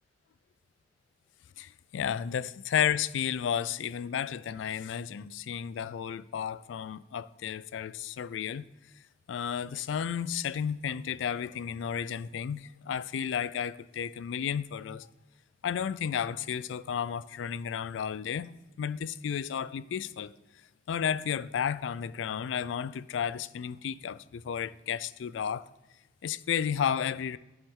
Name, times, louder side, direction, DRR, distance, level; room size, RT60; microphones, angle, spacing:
voice 1, 1.6-8.7 9.3-15.1 15.6-18.5 18.8-20.4 20.9-25.7 26.2-27.4, left 8 dB, 85° left, 0.3 m, -32 dB
9.8 x 7.0 x 3.7 m
head